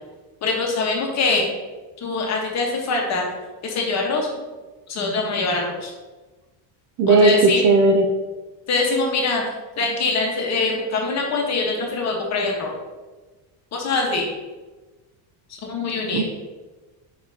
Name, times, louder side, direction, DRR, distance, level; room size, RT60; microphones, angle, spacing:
voice 1, 0.4-1.5 2.0-3.3 3.6-4.3 4.9-5.9 7.1-7.6 8.7-9.4 9.8-12.7 13.7-14.2 15.6-16.2, left 3 dB, 35° left, 0 dB, 1.2 m, -23 dB
voice 2, 7.0-8.1 16.1-16.2, right 2 dB, 45° right, 4 dB, 0.5 m, -15 dB
6.9 x 5.0 x 2.8 m, 1.2 s
cardioid pair, 155°, 44 cm